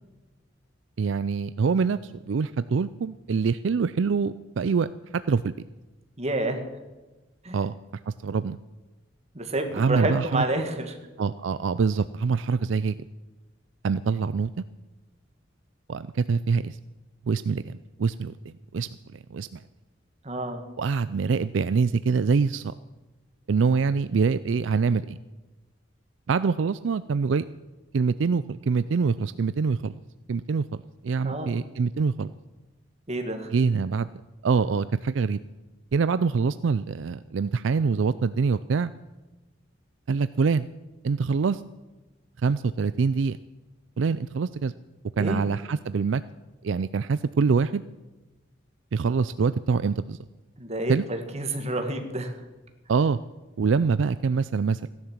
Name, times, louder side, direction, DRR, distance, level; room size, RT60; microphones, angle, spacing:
voice 1, 1.0-4.9 5.3-5.5 7.5-7.7 8.1-8.6 9.7-10.4 11.2-13.1 13.8-14.5 15.9-16.8 17.3-19.6 20.8-22.7 23.5-25.2 26.3-27.4 27.9-30.0 30.3-30.6 31.0-32.3 33.5-34.1 34.4-35.4 35.9-38.9 40.1-40.7 41.0-41.6 42.4-43.4 44.0-44.7 45.2-46.2 46.6-47.8 48.9-50.2 50.9-51.0 52.9-53.2 53.6-54.9, right 5 dB, 75° right, 14 dB, 0.4 m, -25 dB
voice 2, 6.2-6.6 7.4-7.6 9.3-11.0 20.2-20.6 31.2-31.6 33.1-33.5 45.2-45.4 50.6-52.3, right 1 dB, 35° right, 5 dB, 1.9 m, -29 dB
16.0 x 11.0 x 7.4 m, 1.1 s
head